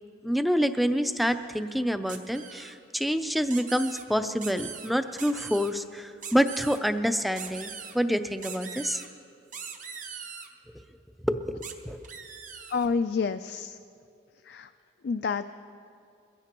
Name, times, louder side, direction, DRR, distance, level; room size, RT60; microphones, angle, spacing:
voice 1, 0.2-9.0 11.3-12.0, equal, ahead, 9 dB, 0.5 m, -27 dB
sound 1, 2.1-2.7 3.5-4.0 4.4-4.9 5.2-5.7 6.2-6.8 7.4-7.9 8.4-9.1 9.5-10.5 11.6-11.7 12.0-12.9, right 6 dB, 45° right, 1.0 m, -41 dB
voice 2, 12.7-13.7 14.5-14.7 15.0-15.4, left 5 dB, 65° left, 10 dB, 0.4 m, -28 dB
22.0 x 15.5 x 3.0 m, 2.4 s
head